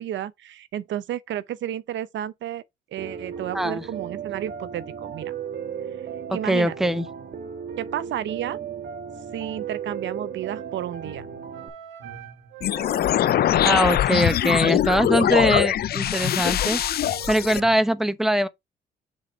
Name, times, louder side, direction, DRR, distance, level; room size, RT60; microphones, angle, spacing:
voice 1, 0.0-2.6 2.9-5.3 6.3-6.9 7.8-8.6 9.3-11.3, right 11 dB, 70° right, 0.6 m, -32 dB
Piano, 3.0-11.7, right 7 dB, 50° right, 1.5 m, -35 dB
voice 2, 3.5-3.8 6.3-7.1 13.6-16.8 17.3-18.5, right 1 dB, ahead, 0.8 m, -22 dB
sound 1, 10.5-15.7 16.0-17.8, right 7 dB, 90° right, 1.2 m, -43 dB
sound 2, 12.6-17.6, left 11 dB, 50° left, 0.4 m, -22 dB
6.6 x 4.1 x 4.4 m
cardioid pair, 90°, 20 cm